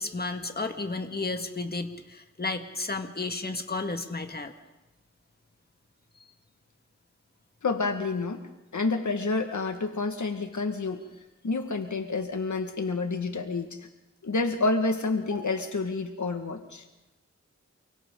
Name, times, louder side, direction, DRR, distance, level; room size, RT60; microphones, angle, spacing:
voice 1, 0.0-4.5, left 3 dB, 35° left, 5 dB, 1.9 m, -32 dB
voice 2, 7.6-8.5 8.7-11.1 11.4-13.9 14.2-16.8, left 3 dB, 80° left, 6 dB, 1.8 m, -29 dB
29.0 x 23.5 x 3.9 m, 1.1 s
wide cardioid pair, 65°, 29 cm